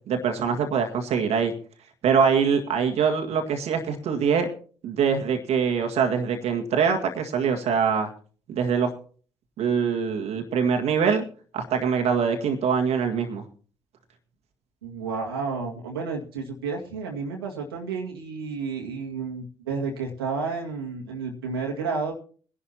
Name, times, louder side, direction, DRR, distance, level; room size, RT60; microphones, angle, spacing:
voice 1, 0.1-1.5 2.0-4.5 4.8-8.1 8.5-8.9 9.6-11.2 11.5-13.4, right 6 dB, 60° right, 3 dB, 1.8 m, -23 dB
voice 2, 14.8-22.1, right 4 dB, 90° right, -1 dB, 2.0 m, -31 dB
22.0 x 11.0 x 2.9 m, 0.41 s
hypercardioid pair, 45°, 12 cm